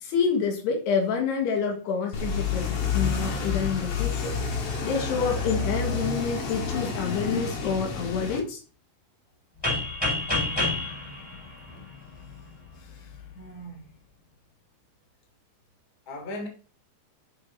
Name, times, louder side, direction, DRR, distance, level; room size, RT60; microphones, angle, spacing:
voice 1, 0.0-4.3 4.8-8.6, left 6 dB, 75° left, 3.5 m, -28 dB
sound 1, 2.1-8.4, left 5 dB, 60° left, 1.7 m, -29 dB
sound 2, 9.6-12.4, left 2 dB, 5° left, 4.0 m, -28 dB
voice 2, 12.7-13.9 16.1-16.5, left 1 dB, 25° left, 2.4 m, -40 dB
10.5 x 6.9 x 2.8 m
omnidirectional pair, 5.0 m